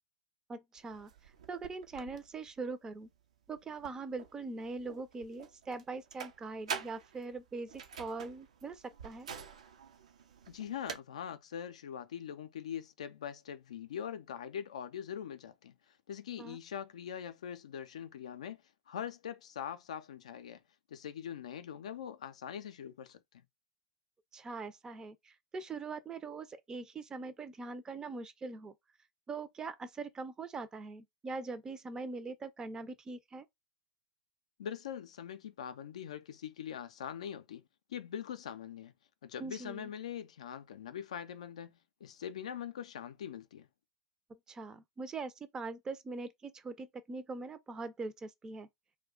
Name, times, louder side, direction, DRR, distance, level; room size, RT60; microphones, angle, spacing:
voice 1, 0.5-1.1 1.5-3.1 3.5-9.3 16.4-16.6 24.3-28.7 29.3-33.4 39.4-39.9 44.3-48.7, right 3 dB, 20° right, 0.4 m, -42 dB
sound 1, 0.8-11.0, right 6 dB, 70° right, 0.5 m, -47 dB
voice 2, 10.5-20.6 20.9-23.2 34.6-37.6 37.9-38.9 39.2-43.7, left 9 dB, 65° left, 0.4 m, -42 dB
2.3 x 2.1 x 3.7 m
figure-of-eight pair, 95°, 4 cm